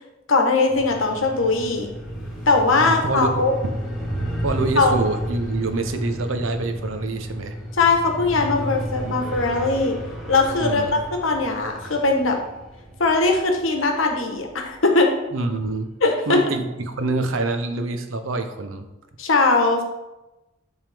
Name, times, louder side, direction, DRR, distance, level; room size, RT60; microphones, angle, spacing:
voice 1, 0.3-1.9 2.5-3.5 4.8-5.0 7.8-10.0 10.3-12.4 13.0-15.1 16.0-16.4 19.2-19.8, left 3 dB, 75° left, 3 dB, 1.1 m, -20 dB
sound 1, 0.7-14.7, equal, 5° right, 1.3 m, -32 dB
voice 2, 2.8-3.4 4.4-7.6 9.1-9.2 10.6-10.9 15.3-15.9 16.3-18.9, right 3 dB, 75° right, 7 dB, 0.7 m, -26 dB
10.5 x 3.6 x 3.4 m, 1.0 s
head